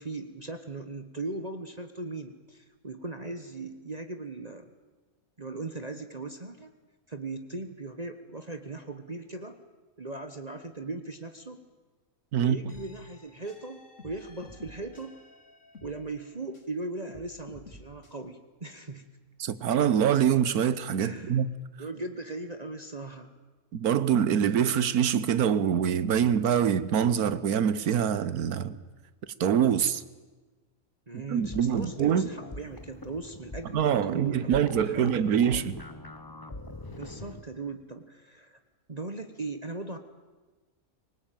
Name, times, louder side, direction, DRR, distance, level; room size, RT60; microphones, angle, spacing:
voice 1, 0.0-4.7 5.4-6.7 7.1-9.6 10.0-11.6 12.4-15.1 15.8-19.1 21.0-21.4 21.8-23.3 31.1-35.7 36.9-38.6 38.9-40.0, right 3 dB, 30° right, 1.2 m, -38 dB
sound 1, 12.7-16.8 17.1-18.1, left 2 dB, 55° left, 3.7 m, -52 dB
voice 2, 19.4-21.5 23.7-28.8 29.4-30.0 31.3-32.3 33.7-35.8, right 8 dB, 85° right, 1.5 m, -25 dB
sound 2, 31.4-37.4, left 2 dB, 15° left, 1.1 m, -44 dB
24.0 x 19.5 x 9.1 m
omnidirectional pair, 1.5 m